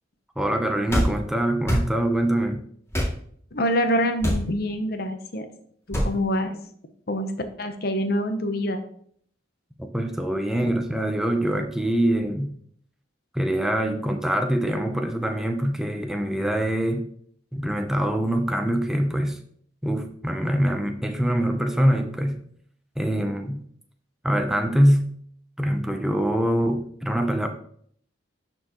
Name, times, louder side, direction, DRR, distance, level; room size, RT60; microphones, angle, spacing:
voice 1, 0.4-2.6 9.9-12.5 13.3-17.1 17.5-19.4 19.8-22.4 23.0-23.6 24.2-25.1 25.6-27.5, right 1 dB, ahead, 5 dB, 0.6 m, -24 dB
sound 1, 0.9-1.1 1.6-1.9 2.9-3.1 4.2-4.5 5.9-6.1, equal, 15° left, 2.4 m, -23 dB
voice 2, 3.5-5.5 5.9-6.6 7.1-7.3 7.6-8.8 10.6-10.7, equal, 50° left, 7 dB, 0.8 m, -25 dB
11.5 x 4.5 x 3.0 m, 0.62 s
head